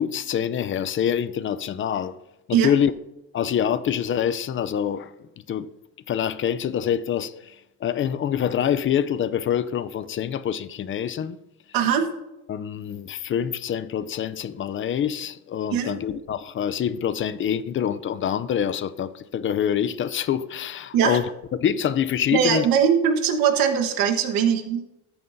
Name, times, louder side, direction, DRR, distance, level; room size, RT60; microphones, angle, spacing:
voice 1, 0.0-2.2 2.5-2.9 3.3-5.1 5.5-5.7 6.1-7.6 7.8-11.4 12.5-21.2 21.5-22.7, left 9 dB, 35° left, 0.4 m, -25 dB
voice 2, 11.7-12.1 15.7-15.9 20.9-21.2 22.3-24.8, right 7 dB, 80° right, 1.3 m, -21 dB
14.0 x 9.2 x 2.6 m
cardioid pair, 140°, 35 cm